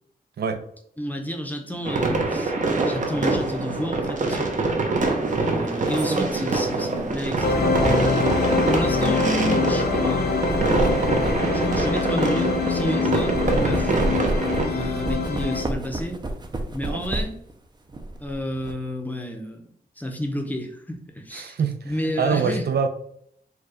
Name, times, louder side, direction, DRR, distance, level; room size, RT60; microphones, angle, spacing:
voice 1, 1.0-2.5 2.8-4.5 5.4-7.7 8.6-10.5 11.5-13.9 14.6-16.2 16.7-17.4 18.2-19.6 20.0-21.6 21.8-22.7, equal, 10° left, 3 dB, 0.7 m, -30 dB
sound 1, 1.8-14.7, right 3 dB, 50° right, 0.8 m, -25 dB
sound 2, 4.0-4.2 5.5-8.3 9.0-9.2 10.3-12.8 13.2-17.5 17.9-18.7, right 1 dB, 25° right, 0.5 m, -31 dB
sound 3, 7.4-15.6, left 4 dB, 80° left, 0.6 m, -24 dB
voice 2, 21.3-22.9, right 5 dB, 85° right, 7 dB, 0.5 m, -25 dB
4.6 x 2.3 x 4.8 m, 0.67 s
wide cardioid pair, 140°, 16 cm